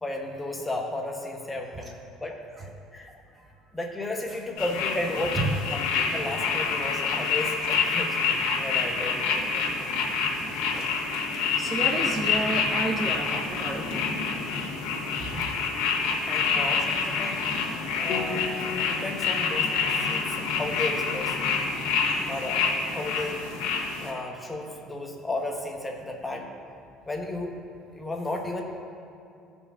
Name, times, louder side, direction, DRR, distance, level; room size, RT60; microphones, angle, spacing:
voice 1, 0.0-2.4 2.9-3.1 3.7-5.4 5.7-9.8 16.3-17.4 18.0-18.5 18.7-21.4 22.3-23.5 24.0-26.5 27.1-27.5 27.9-28.6, left 2 dB, 10° left, 1 dB, 0.9 m, -34 dB
sound 1, 4.6-24.1, left 5 dB, 90° left, 1.4 m, -27 dB
voice 2, 10.5-14.1 15.2-15.5, right 2 dB, 25° right, 3 dB, 0.5 m, -32 dB
Piano, 18.1-27.4, left 4 dB, 60° left, 1.5 m, -42 dB
16.0 x 5.3 x 2.4 m, 2.5 s
cardioid pair, 115°, 0 cm